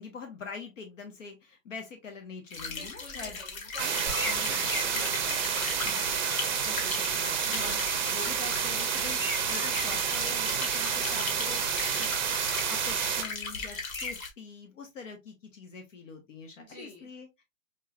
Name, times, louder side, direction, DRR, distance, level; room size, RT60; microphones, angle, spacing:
voice 1, 0.0-3.4 3.8-4.8 5.8-9.2 9.5-17.4, left 4 dB, 65° left, 1.1 m, -44 dB
sound 1, 2.5-14.3, left 4 dB, 85° left, 1.6 m, -37 dB
voice 2, 2.7-6.3 16.6-17.1, left 2 dB, 30° left, 1.5 m, -48 dB
sound 2, 3.8-13.2, right 7 dB, 35° right, 0.6 m, -29 dB
sound 3, 4.1-8.7 9.4-9.5 9.7-9.9 11.2-11.4 12.8-12.9 13.2-13.4, right 1 dB, ahead, 1.1 m, -50 dB
4.6 x 3.1 x 2.4 m
hypercardioid pair, 175°, 40 cm